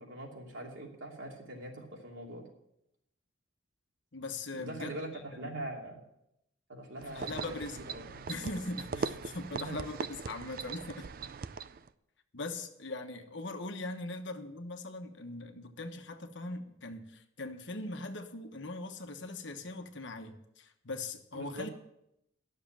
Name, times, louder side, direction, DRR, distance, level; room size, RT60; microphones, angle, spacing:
voice 1, 0.0-2.4 4.5-5.1 5.4-6.0 6.7-8.2 8.9-9.1 9.5-9.8 21.3-21.7, right 1 dB, 75° right, 2.9 m, -43 dB
voice 2, 4.1-5.0 5.4-5.6 7.1-7.8 8.3-11.1 12.3-21.7, left 2 dB, 65° left, 1.1 m, -40 dB
sound 1, 7.0-11.9, right 4 dB, 45° right, 0.4 m, -40 dB
12.5 x 6.6 x 7.4 m
head